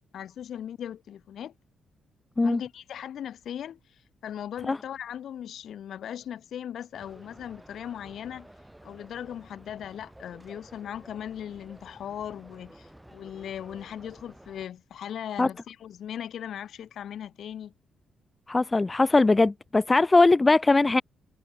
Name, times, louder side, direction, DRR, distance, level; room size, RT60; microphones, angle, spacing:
voice 1, 0.1-1.5 2.4-8.5 8.8-17.7, left 9 dB, 70° left, 4.4 m, -38 dB
sound 1, 6.9-14.7, right 1 dB, 5° right, 4.4 m, -52 dB
voice 2, 18.5-21.0, left 3 dB, 20° left, 0.3 m, -20 dB
cardioid pair, 120°, 0 cm